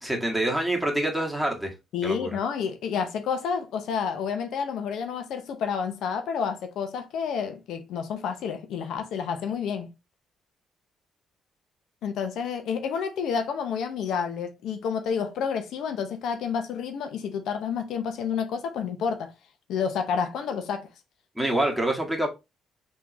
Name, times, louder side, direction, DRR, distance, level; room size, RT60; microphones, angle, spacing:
voice 1, 0.0-1.7 2.0-2.3 21.4-22.3, right 1 dB, ahead, 1.8 m, -26 dB
voice 2, 1.9-9.9 12.0-19.3 19.7-20.9, left 6 dB, 80° left, 0.9 m, -29 dB
4.5 x 3.7 x 3.2 m
cardioid pair, 90°, 0 cm